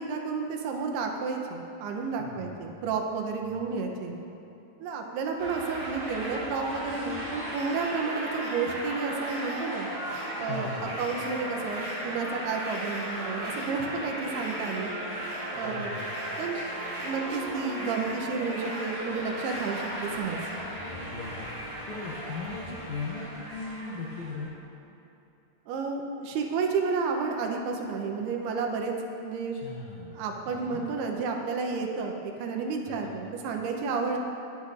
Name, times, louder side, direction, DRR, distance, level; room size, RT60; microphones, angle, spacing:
voice 1, 0.0-4.2 4.8-9.9 10.4-14.9 15.5-16.0 16.4-16.6 17.0-20.4 25.7-28.9 29.2-29.5 30.1-34.2, right 4 dB, 80° right, 2 dB, 2.8 m, -31 dB
voice 2, 2.2-2.7 3.5-3.6 10.5-10.9 15.5-16.1 20.9-24.5 29.6-30.2 30.5-30.8 32.8-33.2, left 4 dB, 70° left, -5 dB, 1.8 m, -39 dB
sound 1, 5.4-24.5, right 1 dB, 55° right, 3.4 m, -36 dB
24.5 x 8.3 x 2.6 m, 2.9 s
omnidirectional pair, 4.8 m